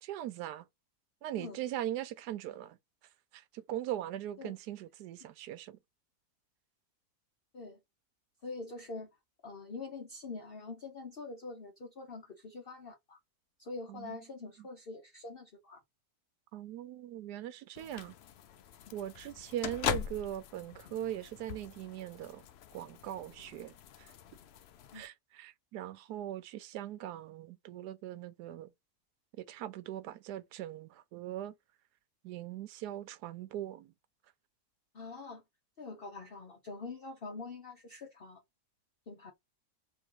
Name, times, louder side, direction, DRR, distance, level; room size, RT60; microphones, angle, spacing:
voice 1, 0.0-0.7 1.2-2.8 3.3-5.8 13.9-14.2 16.5-18.1 18.9-22.4 22.7-24.1 24.9-28.7 29.4-31.5 32.2-33.9, right 12 dB, 85° right, 1.2 m, -40 dB
voice 2, 8.4-9.1 9.4-13.2 13.6-15.8 24.9-25.0 34.9-35.4 35.8-38.4 39.1-39.3, left 3 dB, 45° left, 0.9 m, -44 dB
sound 1, 17.7-25.1, left 9 dB, 75° left, 0.5 m, -42 dB
3.6 x 3.0 x 4.6 m
omnidirectional pair, 1.7 m